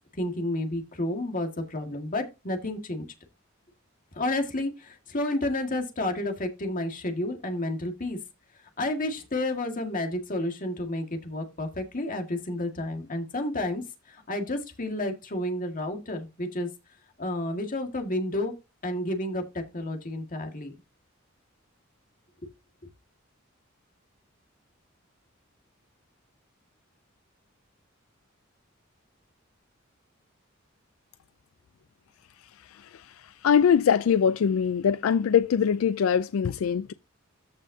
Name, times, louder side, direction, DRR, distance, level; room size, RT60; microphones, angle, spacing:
voice 1, 0.2-3.0 4.1-8.2 8.8-13.8 14.1-16.7 17.2-18.5 18.8-20.7, left 1 dB, 40° left, 1.8 m, -31 dB
voice 2, 32.6-36.9, left 7 dB, 85° left, 0.4 m, -23 dB
14.0 x 5.5 x 2.7 m
head